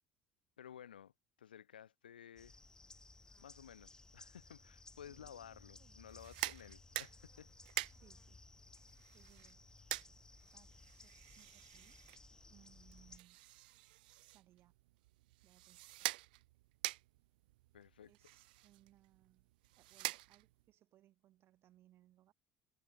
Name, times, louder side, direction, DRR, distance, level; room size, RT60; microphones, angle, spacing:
voice 1, 0.6-1.1 1.4-2.6 3.4-7.5 17.7-18.1, left 9 dB, 80° left, 2.9 m, -55 dB
sound 1, 2.4-13.2, left 2 dB, 15° left, 0.9 m, -60 dB
voice 2, 5.0-6.0 7.9-8.4 8.8-9.7 10.5-12.0 12.5-13.5 14.3-14.7 15.4-16.1 18.1-19.5 19.8-22.3, right 13 dB, 50° right, 4.3 m, -69 dB
sound 2, 6.0-20.7, right 19 dB, 70° right, 1.0 m, -47 dB
figure-of-eight pair, 55°, 5 cm